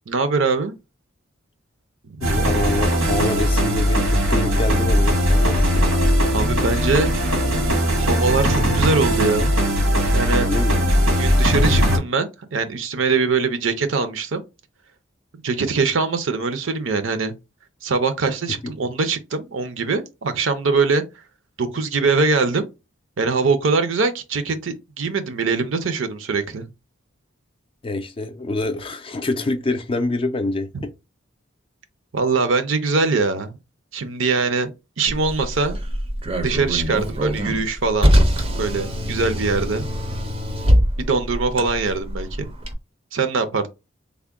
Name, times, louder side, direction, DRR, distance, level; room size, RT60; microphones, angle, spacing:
voice 1, 0.1-0.7 2.1-2.2 6.3-7.1 7.9-9.6 10.1-10.5 11.0-14.4 15.4-17.4 17.8-21.0 21.6-22.7 23.2-26.7 30.7-30.9 32.1-33.5 33.9-34.7 35.0-35.8 36.4-38.1 38.6-39.8 41.0-42.5 43.1-43.7, right 4 dB, 70° right, 0.6 m, -22 dB
voice 2, 2.2-6.0 10.4-10.8 18.6-18.7 27.8-30.9, left 2 dB, 25° left, 0.4 m, -26 dB
sound 1, 2.2-12.0, equal, 85° right, 1.3 m, -19 dB
Car, 35.1-42.7, equal, 30° right, 0.5 m, -23 dB
3.5 x 2.1 x 3.5 m
head